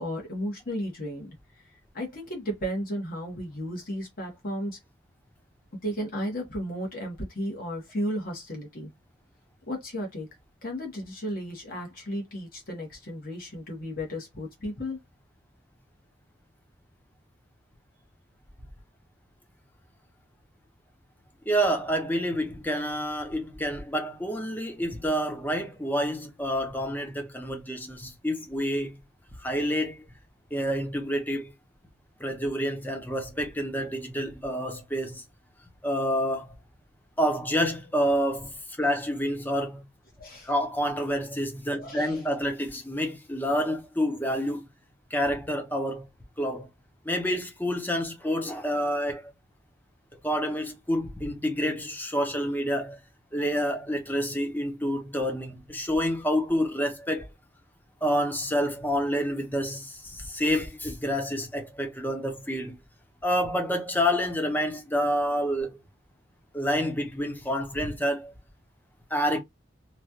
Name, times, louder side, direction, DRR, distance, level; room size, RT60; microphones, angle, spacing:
voice 1, 0.0-1.4 1.9-4.8 5.7-8.9 9.7-10.3 10.6-15.0 40.2-40.5 41.8-42.2, equal, 50° left, 1.3 m, -34 dB
voice 2, 21.5-29.0 29.4-30.1 30.5-31.5 32.2-35.2 35.8-36.5 37.2-38.5 38.8-39.9 40.4-44.7 45.1-46.1 46.4-46.7 47.0-49.3 50.2-53.0 53.3-57.3 58.0-62.8 63.2-65.8 66.5-68.3 69.1-69.4, equal, 10° left, 0.6 m, -28 dB
3.1 x 2.3 x 2.7 m
head